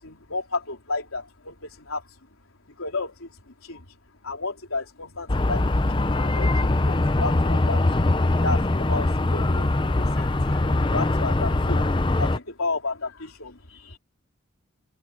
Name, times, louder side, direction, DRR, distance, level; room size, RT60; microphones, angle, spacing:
voice 1, 0.0-2.0 2.7-3.9 4.2-11.9 12.2-14.0, left 3 dB, 80° left, 3.8 m, -33 dB
sound 1, 5.3-12.4, left 2 dB, 20° left, 0.6 m, -22 dB
open air
head